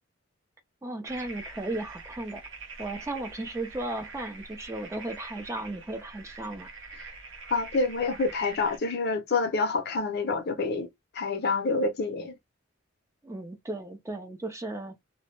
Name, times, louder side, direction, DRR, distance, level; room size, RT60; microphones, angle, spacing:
voice 1, 0.8-2.4 2.8-6.7 13.2-14.9, right 2 dB, 15° right, 0.4 m, -35 dB
sound 1, 1.1-8.8, right 3 dB, 65° right, 0.6 m, -44 dB
voice 2, 7.5-10.9 11.1-12.3, left 3 dB, 50° left, 0.6 m, -27 dB
2.2 x 2.0 x 3.0 m
head